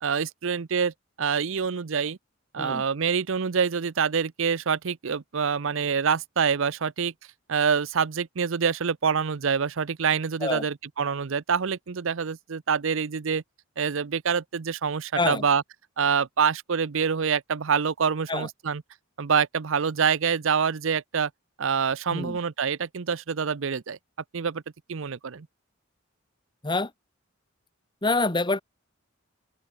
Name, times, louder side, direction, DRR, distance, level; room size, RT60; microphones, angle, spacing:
voice 1, 0.0-2.2 2.5-7.1 7.5-13.4 13.8-15.6 16.0-18.8 19.2-21.3 21.6-24.0 24.3-24.6 24.9-25.5, right 6 dB, 65° right, 0.6 m, -26 dB
voice 2, 28.0-28.6, left 3 dB, 20° left, 1.7 m, -26 dB
head